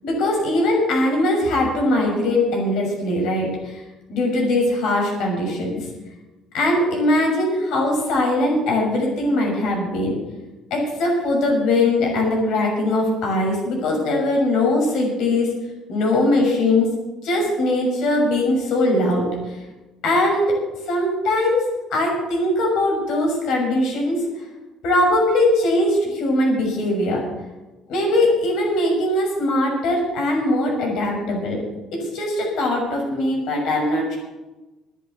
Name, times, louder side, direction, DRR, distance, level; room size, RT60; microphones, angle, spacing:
voice 1, 0.0-3.8 4.1-5.8 6.5-10.1 10.7-15.5 15.9-16.9 17.2-19.6 20.0-20.6 20.9-21.6 21.9-24.2 24.8-27.2 27.9-31.6 32.1-34.2, left 1 dB, 75° left, 0 dB, 6.5 m, -20 dB
11.5 x 10.0 x 8.2 m, 1.1 s
supercardioid pair, 90°, 0 cm